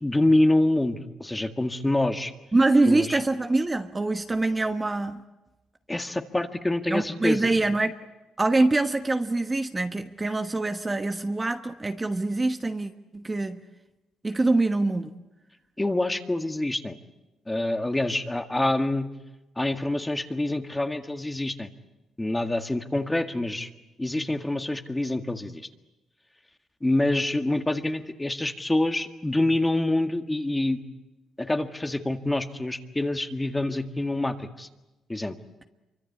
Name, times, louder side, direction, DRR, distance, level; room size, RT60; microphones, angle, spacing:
voice 1, 0.0-2.3 2.9-3.2 5.9-7.5 15.8-17.0 17.5-19.1 19.6-21.7 22.2-23.7 24.0-25.7 26.8-30.8 31.4-34.7 35.1-35.4, left 1 dB, 10° left, 7 dB, 1.8 m, -26 dB
voice 2, 2.5-5.2 6.9-7.9 8.4-13.6 14.2-15.1, right 2 dB, 20° right, 7 dB, 1.2 m, -24 dB
26.5 x 24.0 x 8.6 m, 1.0 s
cardioid pair, 90°, 0 cm